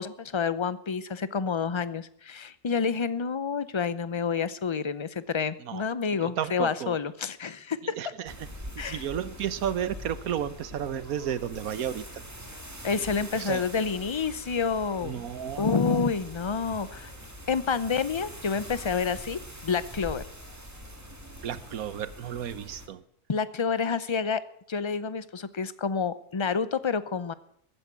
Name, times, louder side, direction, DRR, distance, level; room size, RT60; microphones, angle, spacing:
voice 1, 0.0-8.0 8.8-9.0 12.8-15.2 15.6-17.1 17.5-20.2 23.3-24.4 24.7-27.3, left 5 dB, 35° left, 15 dB, 0.4 m, -29 dB
voice 2, 6.2-7.0 7.8-8.5 8.7-12.2 13.3-13.6 15.0-16.0 21.4-23.0, right 9 dB, 80° right, 15 dB, 1.4 m, -33 dB
sound 1, 8.3-22.9, equal, 10° right, 2.0 m, -43 dB
15.0 x 10.0 x 8.2 m, 0.68 s
omnidirectional pair, 1.5 m